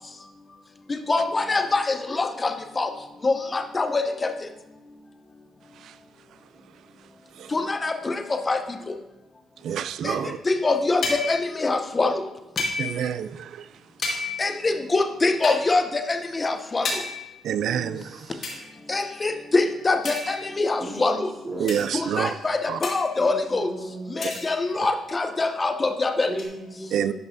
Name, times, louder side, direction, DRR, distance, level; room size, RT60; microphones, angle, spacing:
voice 1, 1.1-2.9 3.2-4.3 7.5-8.2 8.5-8.6 10.0-10.1 10.5-12.1 14.4-16.9 18.9-21.3 21.9-23.7 24.2-26.3, left 3 dB, 25° left, 7 dB, 0.7 m, -24 dB
voice 2, 9.6-10.4 12.8-13.7 17.4-18.1 21.6-22.3 22.7-22.8 26.9-27.1, right 9 dB, 75° right, 14 dB, 0.3 m, -27 dB
sound 1, 11.0-11.5 12.6-13.1 14.0-14.6 15.4-15.7 16.8-17.4 18.4-18.6 20.0-20.6 21.7-21.9 22.8-23.2 24.2-24.7 26.4-26.5, left 3 dB, 60° left, 2.1 m, -31 dB
voice 3, 17.6-18.6 20.8-22.4 23.2-24.3 26.3-27.1, right 1 dB, 30° right, -6 dB, 2.2 m, -37 dB
11.0 x 5.4 x 2.6 m, 0.99 s
cardioid pair, 90°, 0 cm